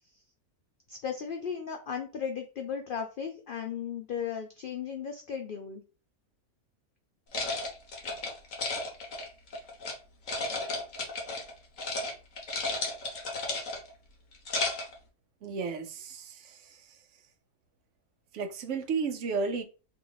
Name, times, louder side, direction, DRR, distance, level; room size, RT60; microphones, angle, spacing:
voice 1, 0.9-5.8, left 7 dB, 85° left, 0.4 m, -36 dB
sound 1, 7.3-9.9 10.3-11.5 11.8-12.1 12.4-13.9 14.3-15.0, left 2 dB, 65° left, 1.4 m, -33 dB
voice 2, 15.4-17.0 18.3-19.6, right 4 dB, 65° right, 1.0 m, -33 dB
3.0 x 2.8 x 3.9 m
omnidirectional pair, 1.5 m